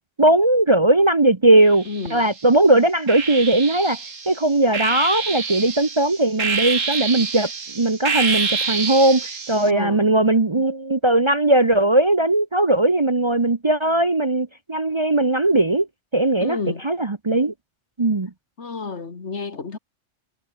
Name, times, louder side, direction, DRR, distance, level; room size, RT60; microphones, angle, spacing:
voice 1, 0.2-4.0 4.3-15.9 16.1-16.6 16.8-17.5 18.0-18.3, right 2 dB, 25° right, 0.9 m, -18 dB
sound 1, 1.7-2.4 3.1-9.7, right 5 dB, 80° right, 2.5 m, -27 dB
voice 2, 1.9-2.3 9.6-10.0 16.4-16.8 18.6-19.8, left 4 dB, 60° left, 2.4 m, -30 dB
omnidirectional pair, 1.3 m